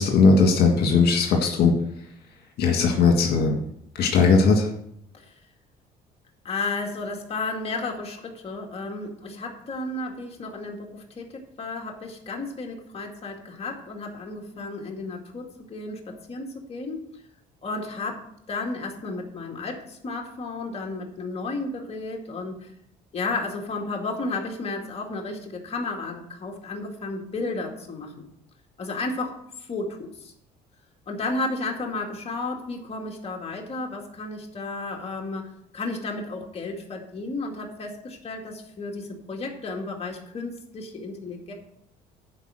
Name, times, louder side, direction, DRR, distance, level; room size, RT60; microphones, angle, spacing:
voice 1, 0.0-1.7 2.6-3.6 4.0-4.7, left 4 dB, 70° left, 2 dB, 1.8 m, -18 dB
voice 2, 6.4-17.1 17.6-22.7 23.1-28.3 28.8-30.3 31.1-41.5, left 3 dB, 35° left, 1 dB, 2.2 m, -33 dB
11.0 x 4.7 x 7.7 m, 0.72 s
cardioid pair, 110°, 17 cm